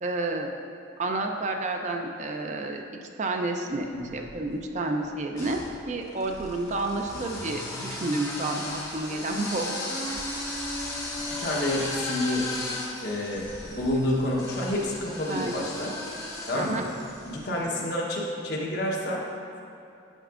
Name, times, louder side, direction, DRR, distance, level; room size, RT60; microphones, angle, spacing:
voice 1, 0.0-0.5 1.0-2.8 3.2-3.9 4.1-5.6 5.9-10.2 15.3-15.6 16.5-16.8, right 2 dB, 35° right, 3 dB, 0.4 m, -30 dB
sound 1, 3.9-4.6 5.3-17.6, left 1 dB, 15° left, 0.9 m, -36 dB
voice 2, 11.2-12.5 13.0-15.9 16.5-16.8 17.3-19.2, left 1 dB, 55° left, -3 dB, 1.0 m, -29 dB
8.9 x 5.9 x 2.5 m, 2.7 s
head